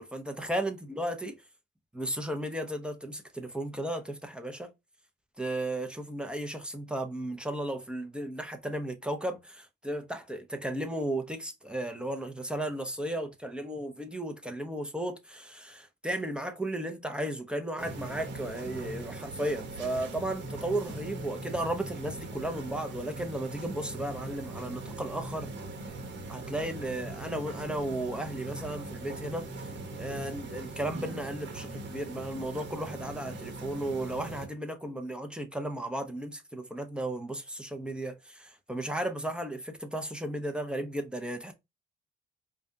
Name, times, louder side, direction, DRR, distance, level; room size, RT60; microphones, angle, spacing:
voice 1, 0.0-1.4 1.9-4.7 5.4-25.5 26.3-29.7 30.0-41.5, right 1 dB, 5° right, 0.9 m, -35 dB
sound 1, 17.8-34.5, right 2 dB, 65° right, 1.1 m, -41 dB
4.9 x 2.5 x 2.8 m
cardioid pair, 90°, 20 cm